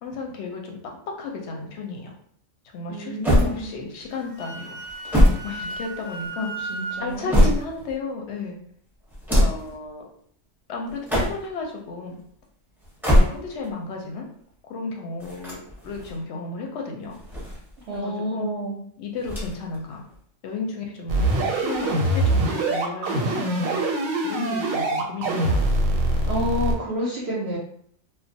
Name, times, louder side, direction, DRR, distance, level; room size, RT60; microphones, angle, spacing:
voice 1, 0.0-2.1 2.7-4.8 5.4-6.6 7.0-8.6 9.4-10.0 10.7-12.2 13.1-14.3 14.7-17.2 17.9-18.5 19.0-20.1 20.4-23.9 24.2-25.7, left 3 dB, 65° left, 1 dB, 0.8 m, -33 dB
voice 2, 2.9-3.8 6.6-7.3 17.9-18.8 26.3-27.6, equal, 65° right, -4 dB, 0.7 m, -29 dB
sound 1, 3.2-4.0 4.8-6.2 6.9-7.9 9.1-9.7 10.9-11.6 12.8-13.7 15.2-16.2 17.1-18.0 19.2-19.8 20.1-20.2 21.2-22.0, equal, ahead, 0.6 m, -22 dB
Wind instrument woodwind instrument, 4.1-7.0, right 2 dB, 90° left, 1.0 m, -35 dB
sound 2, 21.1-26.7, right 2 dB, 90° right, 1.0 m, -23 dB
2.3 x 2.0 x 2.6 m, 0.63 s
omnidirectional pair, 1.4 m